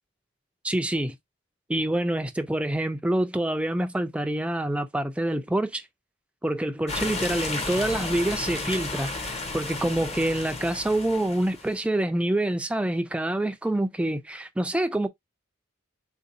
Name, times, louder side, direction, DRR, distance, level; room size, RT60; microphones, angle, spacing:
voice 1, 0.6-1.2 1.7-5.9 6.4-15.1, right 1 dB, 5° right, 0.3 m, -26 dB
sound 1, 6.9-11.8, left 3 dB, 30° left, 0.7 m, -33 dB
3.6 x 2.7 x 2.5 m
head